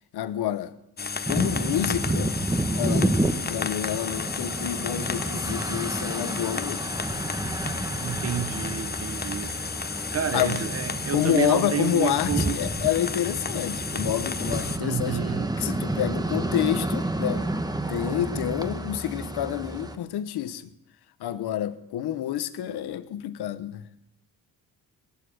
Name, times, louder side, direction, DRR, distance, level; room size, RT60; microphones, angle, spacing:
voice 1, 0.1-0.7 1.3-2.4 2.7-3.2 3.5-6.9 10.3-10.6 11.1-15.2 15.6-17.5 17.9-20.7 21.2-23.9, left 11 dB, 90° left, 1.1 m, -28 dB
sound 1, 1.0-14.8, left 5 dB, 25° left, 0.8 m, -33 dB
sound 2, 1.2-20.0, right 2 dB, 10° right, 1.2 m, -30 dB
voice 2, 8.0-9.6 10.1-12.6 14.8-15.5, right 9 dB, 40° right, 0.8 m, -30 dB
18.0 x 11.5 x 6.4 m
cardioid pair, 90°, 38 cm